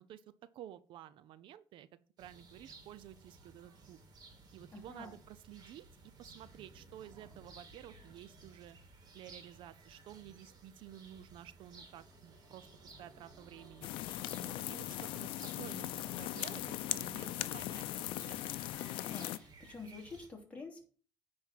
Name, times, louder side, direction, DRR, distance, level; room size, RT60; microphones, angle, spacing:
voice 1, 0.0-1.9 2.2-4.0 4.5-5.9 6.2-8.8 9.1-13.9 14.4-15.3 15.6-18.4, right 11 dB, 70° right, 15 dB, 0.6 m, -52 dB
sound 1, 2.2-20.3, right 3 dB, 50° right, 2.9 m, -57 dB
voice 2, 4.7-5.2 19.0-20.8, left 4 dB, 15° left, 0 dB, 3.0 m, -48 dB
sound 2, 11.3-19.1, right 1 dB, ahead, 3.8 m, -62 dB
sound 3, 13.8-19.4, left 15 dB, 85° left, 0.6 m, -39 dB
9.6 x 4.4 x 7.3 m, 0.42 s
cardioid pair, 125°, 9 cm